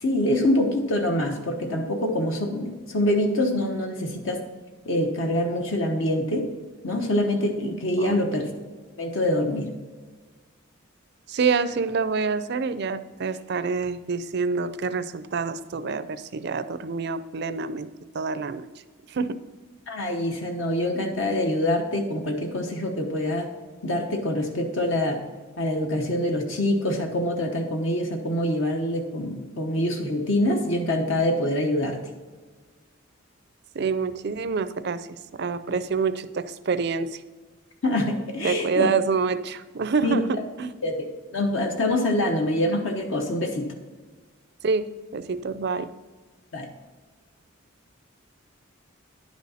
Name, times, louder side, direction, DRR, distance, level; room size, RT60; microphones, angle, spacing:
voice 1, 0.0-4.4 4.8-6.5 6.8-8.4 9.0-9.7 19.9-23.5 23.8-25.2 25.6-32.0 35.7-35.8 37.8-38.9 40.0-40.2 40.8-41.1 41.3-43.7 46.5-46.7, left 1 dB, 65° left, 3 dB, 1.0 m, -25 dB
voice 2, 11.3-17.9 18.1-18.7 19.1-19.4 33.7-37.2 38.4-40.8 44.6-45.9, right 5 dB, 55° right, 12 dB, 0.4 m, -27 dB
10.0 x 6.2 x 4.2 m, 1.4 s
head